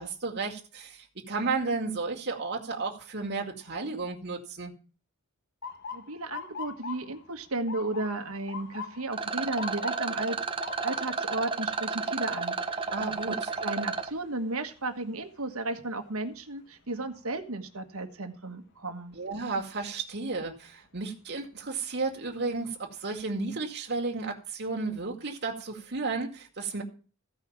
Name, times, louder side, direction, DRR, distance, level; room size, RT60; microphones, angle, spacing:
voice 1, 0.0-4.7 12.9-13.5 19.1-26.8, right 3 dB, 50° right, 0 dB, 2.2 m, -33 dB
Motor vehicle (road) / Siren, 5.6-17.5 18.0-18.4 19.2-19.5 21.4-21.6 22.1-22.2 22.6-23.3, left 5 dB, 50° left, 1.0 m, -45 dB
voice 2, 5.9-10.4 10.8-12.9 13.3-19.2, right 2 dB, 75° right, 7 dB, 1.5 m, -34 dB
Rattle, 9.1-14.1, right 4 dB, 25° right, 0.9 m, -32 dB
15.0 x 5.7 x 7.3 m, 0.37 s
head